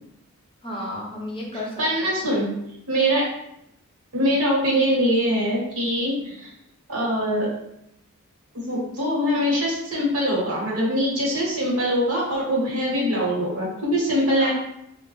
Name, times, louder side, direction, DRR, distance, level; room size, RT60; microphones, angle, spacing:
voice 1, 0.6-2.2 14.3-14.5, left 1 dB, 25° left, -2 dB, 0.7 m, -33 dB
voice 2, 1.8-2.5 2.9-3.2 4.1-6.5 6.9-7.5 8.6-14.5, equal, 75° right, -4 dB, 1.2 m, -23 dB
3.3 x 2.2 x 3.1 m, 0.80 s
head